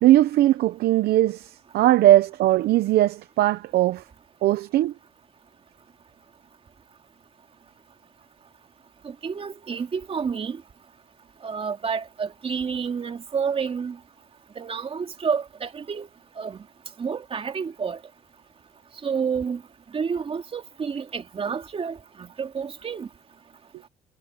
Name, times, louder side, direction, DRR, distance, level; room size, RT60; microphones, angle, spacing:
voice 1, 0.0-4.0 4.4-4.9, right 14 dB, 70° right, 0.8 m, -19 dB
voice 2, 9.0-10.6 11.4-14.0 14.6-16.1 16.4-16.6 17.0-18.0 19.0-19.6 19.9-23.1, right 6 dB, 35° right, 2.7 m, -29 dB
cardioid pair, 110°, 17 cm